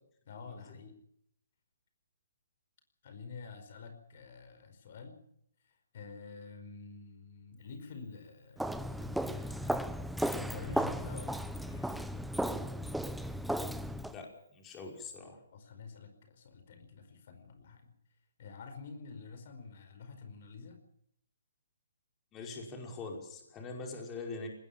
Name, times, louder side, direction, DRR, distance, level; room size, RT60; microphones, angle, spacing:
voice 1, 0.2-1.0 3.0-5.2 5.6-10.0 10.3-12.1 15.5-17.9 18.4-20.8, left 5 dB, 50° left, 7 dB, 5.0 m, -49 dB
Walk footsteps, 8.6-14.1, equal, ahead, 0.8 m, -35 dB
voice 2, 14.1-15.4 22.3-24.5, left 3 dB, 20° left, 1 dB, 5.4 m, -43 dB
20.5 x 20.0 x 7.2 m, 0.71 s
hypercardioid pair, 145°, 0 cm